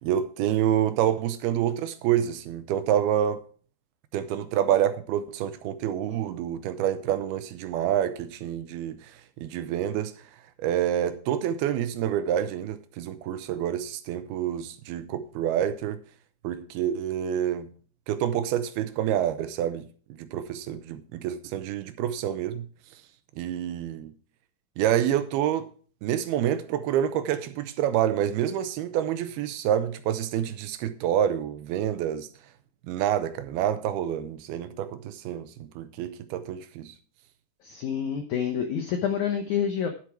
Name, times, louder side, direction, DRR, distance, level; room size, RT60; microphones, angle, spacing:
voice 1, 0.0-3.4 4.1-9.0 9.4-10.1 10.6-16.0 16.4-17.7 18.1-19.8 20.2-22.7 23.4-24.1 24.8-25.7 26.0-32.3 32.9-36.9, right 10 dB, 75° right, 2.6 m, -27 dB
voice 2, 37.6-39.9, left 8 dB, 85° left, 1.7 m, -28 dB
11.0 x 8.1 x 4.6 m
omnidirectional pair, 4.8 m